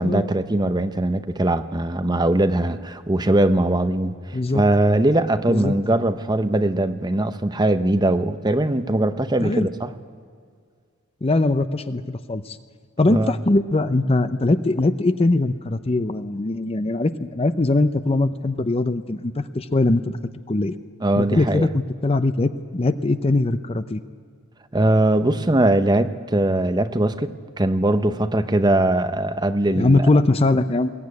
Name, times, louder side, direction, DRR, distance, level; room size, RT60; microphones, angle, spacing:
voice 1, 0.0-9.9 13.1-13.3 21.0-21.7 24.7-27.3 27.6-30.1, right 1 dB, 20° right, 9 dB, 0.8 m, -21 dB
voice 2, 11.2-12.6 13.0-20.2 20.5-20.7 21.2-24.0 29.7-30.9, left 2 dB, 30° left, 11 dB, 0.6 m, -21 dB
21.5 x 16.0 x 9.6 m, 2.1 s
head